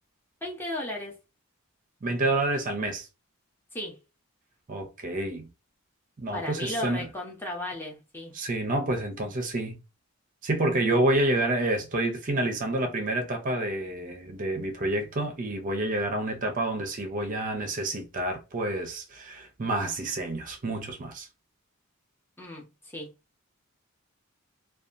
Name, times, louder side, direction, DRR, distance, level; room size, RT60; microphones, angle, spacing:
voice 1, 0.4-1.1 3.7-4.0 6.3-8.3 22.4-22.6 22.9-23.1, left 1 dB, 10° left, 0.7 m, -35 dB
voice 2, 2.0-3.1 4.7-5.5 6.2-7.1 8.3-9.8 10.4-21.3, right 1 dB, 35° right, 0.5 m, -28 dB
2.7 x 2.2 x 2.5 m
head